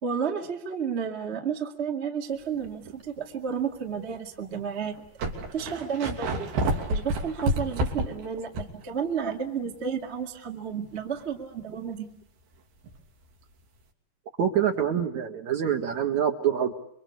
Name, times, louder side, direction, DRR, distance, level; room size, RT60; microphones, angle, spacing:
voice 1, 0.0-5.0 5.5-6.5 6.9-12.1, right 7 dB, 25° right, 2 dB, 1.4 m, -31 dB
sound 1, 2.6-2.9 3.6-3.7 4.6-4.7 4.9-8.8 9.2-9.3 12.8-13.0, right 1 dB, 70° right, 5.0 m, -29 dB
voice 2, 14.4-16.7, right 9 dB, 55° right, 5 dB, 2.6 m, -25 dB
27.0 x 25.0 x 8.3 m, 0.71 s
omnidirectional pair, 4.8 m